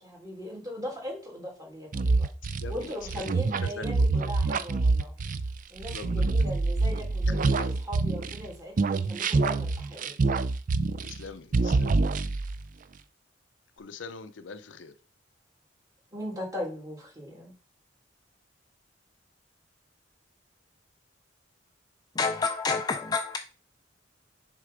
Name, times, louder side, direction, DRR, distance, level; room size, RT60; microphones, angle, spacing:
voice 1, 0.0-2.3 2.7-5.1 5.7-10.1 16.1-17.5, left 1 dB, 20° right, 2.4 m, -39 dB
sound 1, 1.9-8.5 8.8-11.3 11.5-12.6, right 3 dB, 45° right, 0.4 m, -26 dB
voice 2, 2.6-3.2 3.6-4.2 5.9-6.4 7.3-7.8 11.0-12.0 13.8-14.9, left 4 dB, 75° left, 0.6 m, -43 dB
voice 3, 22.2-23.4, left 4 dB, 20° left, 0.3 m, -28 dB
6.6 x 3.7 x 5.0 m
head